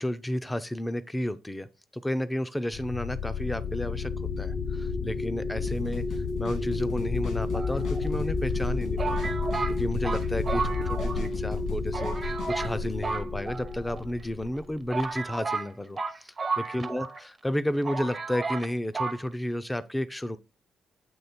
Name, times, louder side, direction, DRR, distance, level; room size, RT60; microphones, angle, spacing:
voice 1, 0.0-1.7 1.9-9.3 9.7-17.1 17.4-20.4, left 1 dB, 10° left, 0.6 m, -32 dB
sound 1, 2.7-15.0, left 4 dB, 50° left, 0.8 m, -31 dB
sound 2, 5.7-12.9, left 4 dB, 75° left, 2.4 m, -42 dB
sound 3, 7.5-8.3 9.0-11.3 11.6-11.7 11.9-12.7 13.0-14.0 14.5-14.6 14.9-17.2 17.5-17.6 17.8-18.7 18.9-19.2, right 4 dB, 30° right, 0.8 m, -33 dB
8.0 x 3.0 x 4.3 m
cardioid pair, 90°, 0 cm